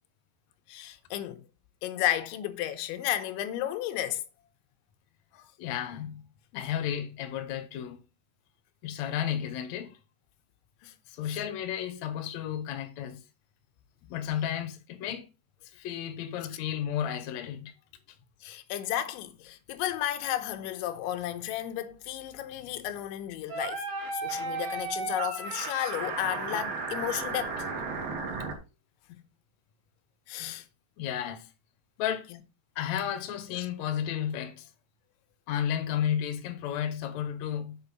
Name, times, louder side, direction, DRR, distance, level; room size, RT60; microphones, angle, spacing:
voice 1, 0.7-1.4 1.8-4.2 5.3-5.5 6.5-6.7 10.8-10.9 11.3-11.4 18.4-23.8 24.1-27.7 29.1-29.2 30.3-30.7 33.5-33.7, left 12 dB, 90° left, 3.2 m, -33 dB
voice 2, 5.6-6.2 6.5-8.0 8.8-10.0 11.1-13.2 14.1-15.3 15.7-17.7 31.0-31.5 32.0-32.3 32.8-34.7 35.5-37.8, left 9 dB, 70° left, 1.7 m, -32 dB
sound 1, 23.5-28.5, right 4 dB, 60° right, 3.3 m, -34 dB
8.0 x 4.5 x 5.5 m
omnidirectional pair, 5.2 m